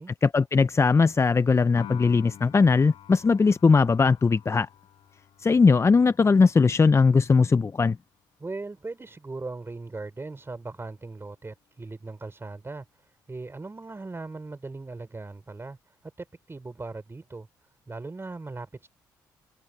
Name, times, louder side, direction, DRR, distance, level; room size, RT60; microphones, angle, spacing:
voice 1, 0.2-4.7 5.4-8.0, left 4 dB, 30° left, 0.6 m, -20 dB
Piano, 1.8-8.2, left 10 dB, 65° left, 7.5 m, -49 dB
voice 2, 8.4-17.5 17.9-18.9, right 3 dB, 25° right, 4.4 m, -39 dB
hypercardioid pair, 50°, 10 cm